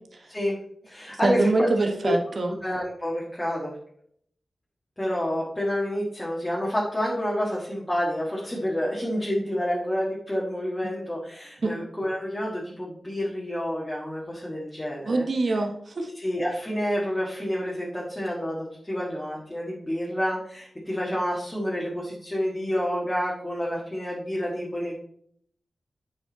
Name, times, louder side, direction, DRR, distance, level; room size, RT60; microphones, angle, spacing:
voice 1, 0.3-0.6 0.8-1.7 2.0-2.1 2.6-3.7 5.0-15.3 16.2-25.0, equal, 15° left, -5 dB, 1.7 m, -29 dB
voice 2, 1.2-2.5 11.6-11.7 15.1-16.1, right 2 dB, 55° right, 3 dB, 1.3 m, -24 dB
9.0 x 5.4 x 4.1 m, 0.66 s
wide cardioid pair, 110°, 0 cm